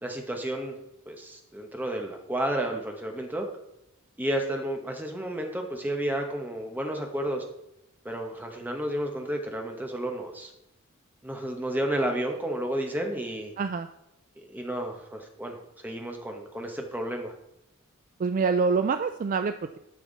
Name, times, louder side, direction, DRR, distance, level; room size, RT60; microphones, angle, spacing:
voice 1, 0.0-0.8 1.1-3.5 4.2-7.4 8.0-10.5 11.2-13.5 14.4-17.3, right 1 dB, 10° right, 2 dB, 1.1 m, -31 dB
voice 2, 13.6-13.9 18.2-19.8, right 5 dB, 35° right, 9 dB, 0.3 m, -26 dB
9.8 x 5.8 x 4.0 m, 0.84 s
head